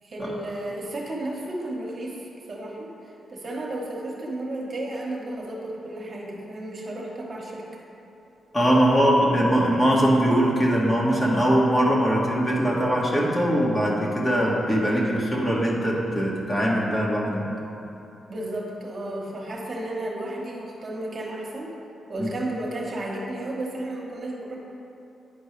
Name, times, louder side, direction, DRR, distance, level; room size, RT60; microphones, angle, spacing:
voice 1, 0.0-7.7 18.3-21.8 22.1-24.6, right 1 dB, 50° right, -3 dB, 1.3 m, -33 dB
voice 2, 8.5-17.5 22.2-22.3, equal, 25° left, -4 dB, 1.6 m, -21 dB
10.5 x 4.4 x 3.3 m, 2.7 s
cardioid pair, 60°, 0 cm